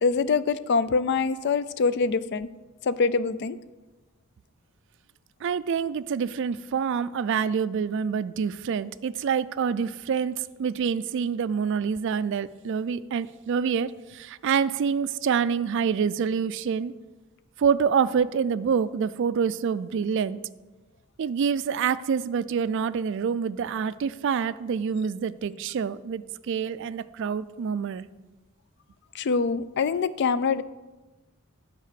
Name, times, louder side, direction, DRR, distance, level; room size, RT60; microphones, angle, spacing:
voice 1, 0.0-2.5 2.8-3.6 29.1-30.6, left 4 dB, 50° left, 15 dB, 0.4 m, -24 dB
voice 2, 5.4-16.9 17.6-20.4 21.2-28.0, right 6 dB, 55° right, 15 dB, 0.3 m, -26 dB
9.2 x 4.8 x 6.8 m, 1.2 s
head